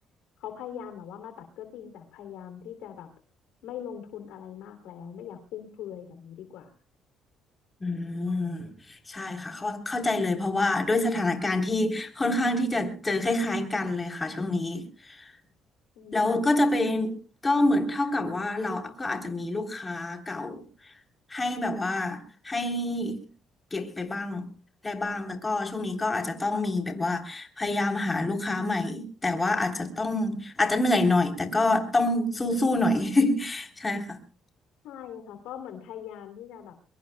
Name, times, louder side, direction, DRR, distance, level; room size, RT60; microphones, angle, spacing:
voice 1, 0.4-3.1 3.6-6.7 15.9-16.5 34.8-36.8, left 9 dB, 85° left, 2.9 m, -41 dB
voice 2, 7.8-15.3 16.1-17.2 17.4-20.6 21.3-23.3 23.7-24.4 24.8-34.2, left 2 dB, 25° left, 3.5 m, -27 dB
23.5 x 22.5 x 2.3 m
supercardioid pair, 75°, 0 cm